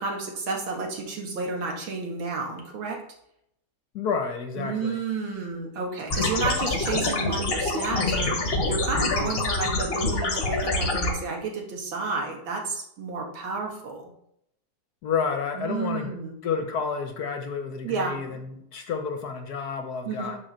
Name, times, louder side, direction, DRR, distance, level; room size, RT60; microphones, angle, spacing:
voice 1, 0.0-3.0 4.6-14.1 15.6-16.4 17.8-18.1 20.0-20.3, right 4 dB, 85° right, 1 dB, 2.3 m, -31 dB
voice 2, 3.9-5.0 15.0-16.1 16.4-20.4, left 6 dB, 60° left, 6 dB, 1.2 m, -30 dB
sound 1, 6.1-11.1, left 2 dB, 35° left, 1.1 m, -26 dB
6.2 x 4.6 x 6.4 m, 0.75 s
omnidirectional pair, 2.1 m